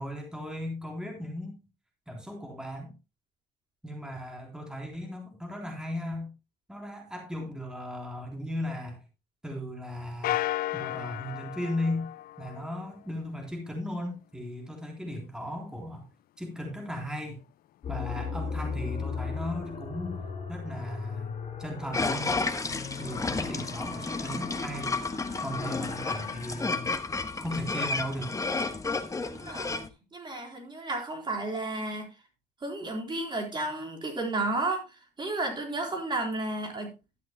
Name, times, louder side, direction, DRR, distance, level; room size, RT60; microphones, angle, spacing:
voice 1, 0.0-1.6 2.1-3.0 3.8-6.3 6.7-9.0 9.4-10.4 10.7-12.1 12.4-16.1 16.4-17.4 17.9-20.2 20.5-22.4 23.0-25.0 25.4-26.9 27.4-28.4, left 1 dB, 5° right, 1 dB, 3.7 m, -36 dB
sound 1, 10.2-12.9, left 14 dB, 60° left, 0.5 m, -33 dB
sound 2, 17.8-26.6, left 5 dB, 40° left, 4.8 m, -38 dB
sound 3, 21.9-29.9, left 3 dB, 20° left, 1.3 m, -32 dB
voice 2, 29.2-32.1 32.6-36.9, right 2 dB, 25° right, 2 dB, 3.9 m, -33 dB
12.5 x 11.5 x 2.2 m, 0.26 s
cardioid pair, 110°, 17 cm